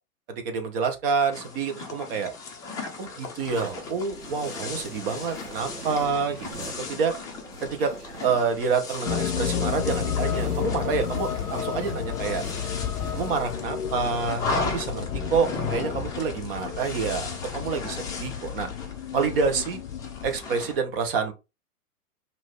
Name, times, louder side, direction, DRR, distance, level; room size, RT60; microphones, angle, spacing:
voice 1, 0.3-2.3 3.0-7.1 7.6-12.4 13.1-18.7 19.1-19.8 20.2-21.3, right 5 dB, 40° right, 1.1 m, -28 dB
sound 1, 1.3-20.8, left 4 dB, 10° left, 0.6 m, -36 dB
sound 2, 3.4-14.6, right 3 dB, 85° right, 1.3 m, -43 dB
sound 3, 9.1-20.4, left 8 dB, 75° left, 0.6 m, -32 dB
5.1 x 2.8 x 3.6 m
figure-of-eight pair, 115°, 45 cm